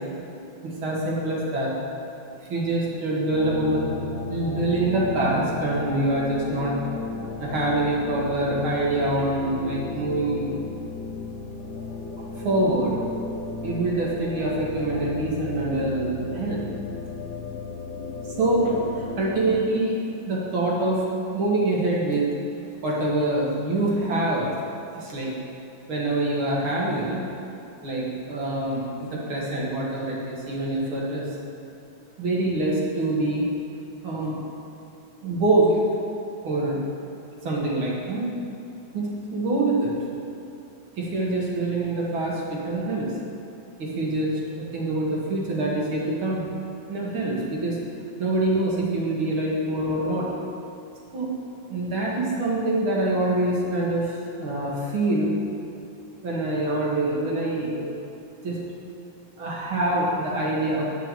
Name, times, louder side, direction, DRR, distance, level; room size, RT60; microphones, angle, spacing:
voice 1, 0.6-1.7 2.4-3.9 4.3-6.7 7.4-10.5 12.2-12.9 13.6-16.6 18.4-18.9 19.2-20.0 20.3-21.0 21.3-22.3 22.8-24.5 24.9-25.3 25.9-27.2 27.8-31.2 32.2-33.5 34.0-34.5 35.2-35.8 36.4-36.8 37.4-38.3 38.9-39.9 41.0-43.1 43.8-46.5 46.9-47.8 48.2-50.3 51.1-51.3 51.7-55.3 56.2-57.9 58.4-58.6 59.4-60.8, right 2 dB, 85° right, -4 dB, 2.8 m, -25 dB
sound 1, 3.3-19.6, left 3 dB, 45° left, 1.6 m, -34 dB
10.5 x 6.0 x 7.7 m, 2.8 s
omnidirectional pair, 2.2 m